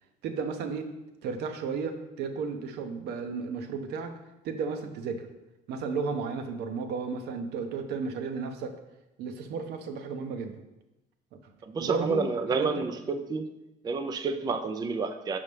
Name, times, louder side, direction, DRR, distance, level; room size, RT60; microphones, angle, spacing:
voice 1, 0.2-0.9 1.2-4.1 4.4-5.3 5.7-8.7 9.2-10.5 11.3-11.4 11.8-12.7, right 5 dB, 80° right, 6 dB, 0.7 m, -33 dB
voice 2, 11.7-13.4 13.8-15.4, right 4 dB, 25° right, 7 dB, 0.4 m, -30 dB
5.6 x 5.5 x 3.3 m, 0.95 s
cardioid pair, 110°, 17 cm